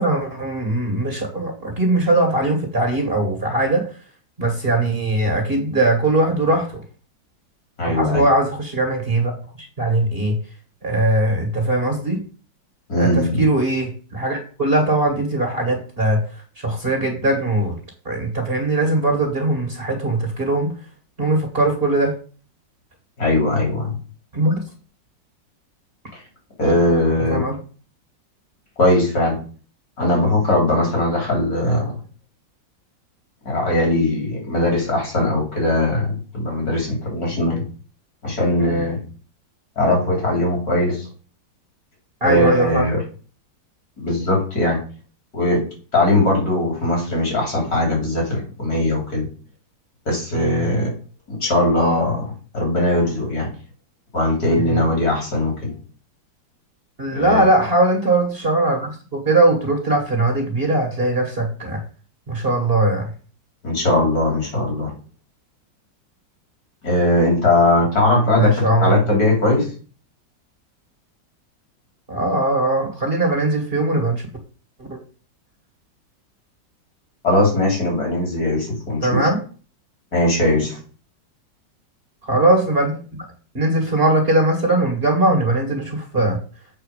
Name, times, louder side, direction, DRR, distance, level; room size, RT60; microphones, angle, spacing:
voice 1, 0.0-3.8 4.4-6.8 7.8-10.4 10.8-12.2 12.9-16.2 16.6-17.7 18.1-20.7 21.2-22.1 24.3-24.6 27.3-27.6 38.6-38.9 42.2-42.9 50.3-50.7 54.6-54.8 57.0-61.8 62.3-63.1 68.4-69.0 72.1-74.2 74.9-75.0 79.0-79.4 82.2-83.0 83.5-86.4, right 2 dB, 30° right, 3 dB, 1.8 m, -20 dB
voice 2, 7.8-8.2 12.9-13.4 23.2-23.9 26.6-27.5 28.8-29.4 30.0-32.0 33.5-37.6 38.2-39.0 39.8-41.1 42.2-43.0 44.0-44.8 45.3-45.7 45.9-49.3 50.1-50.9 51.3-53.5 54.1-55.7 57.1-57.4 63.6-64.9 66.8-69.7 77.2-79.3 80.1-80.8, left 1 dB, 55° left, 0 dB, 3.7 m, -20 dB
7.5 x 4.4 x 6.6 m, 0.38 s
omnidirectional pair, 2.0 m